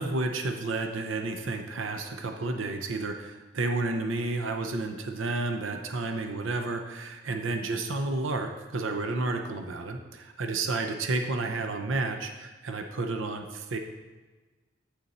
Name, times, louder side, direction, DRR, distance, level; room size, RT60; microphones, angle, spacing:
voice 1, 0.0-13.8, right 3 dB, 80° right, 5 dB, 0.7 m, -31 dB
8.0 x 6.8 x 4.2 m, 1.3 s
head